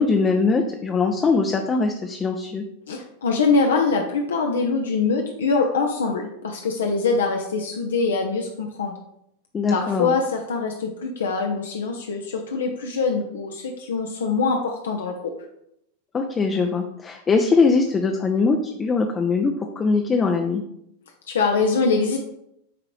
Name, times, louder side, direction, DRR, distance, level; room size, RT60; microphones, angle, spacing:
voice 1, 0.0-2.6 9.5-10.1 16.1-20.6, left 4 dB, 20° left, 4 dB, 0.6 m, -21 dB
voice 2, 2.9-8.9 9.7-15.3 21.3-22.2, left 4 dB, 65° left, 2 dB, 0.7 m, -23 dB
9.2 x 3.8 x 3.1 m, 0.77 s
figure-of-eight pair, 90°, 0 cm